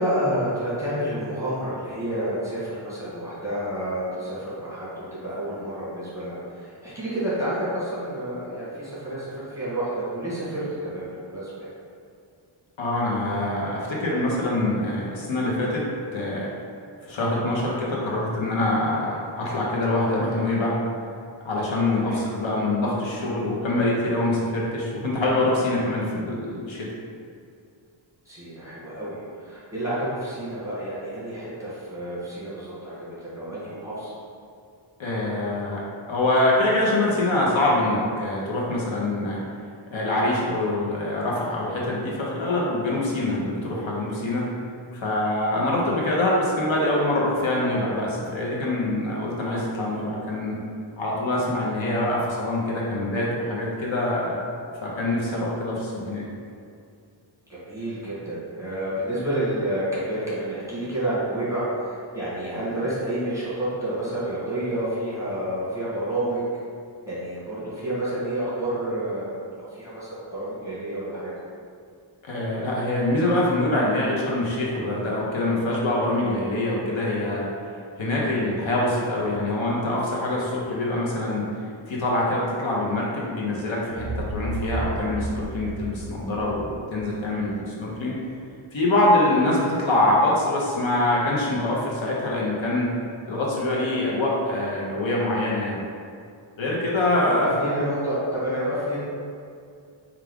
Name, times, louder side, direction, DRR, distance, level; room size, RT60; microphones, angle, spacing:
voice 1, 0.0-11.7 22.0-22.2 28.2-34.1 43.2-43.4 57.5-66.4 67.0-71.3 97.3-99.0, right 1 dB, 5° right, -10 dB, 1.2 m, -29 dB
voice 2, 12.8-16.5 17.1-20.8 21.4-26.9 35.0-39.4 39.9-44.5 44.9-50.6 51.0-54.4 54.8-56.2 72.2-77.5 78.0-81.5 81.9-88.2 88.7-92.9 93.3-95.8 96.6-97.5, left 1 dB, 75° left, -4 dB, 0.8 m, -24 dB
sound 1, 83.9-87.8, right 2 dB, 30° right, 0.4 m, -33 dB
4.5 x 2.4 x 3.5 m, 2.3 s
wide cardioid pair, 180°, 47 cm